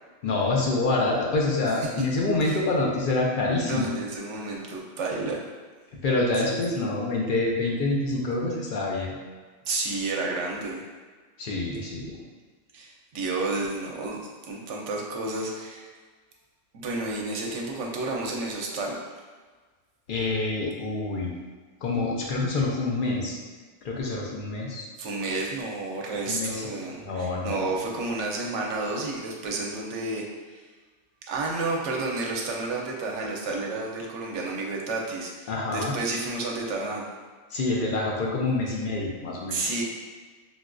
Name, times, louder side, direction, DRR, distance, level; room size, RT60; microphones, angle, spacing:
voice 1, 0.2-3.9 5.9-9.2 11.4-12.2 20.1-21.3 21.8-23.4 23.8-24.9 26.3-26.7 27.0-27.7 35.5-35.9 37.5-39.6, left 2 dB, 60° left, -2 dB, 0.5 m, -26 dB
voice 2, 1.8-2.1 2.4-2.6 3.6-5.4 6.4-6.9 9.7-10.8 12.7-15.9 16.7-18.9 25.0-30.6 31.3-37.1 39.5-39.8, right 3 dB, 75° right, -1 dB, 0.9 m, -31 dB
3.9 x 2.2 x 2.4 m, 1.4 s
omnidirectional pair, 1.3 m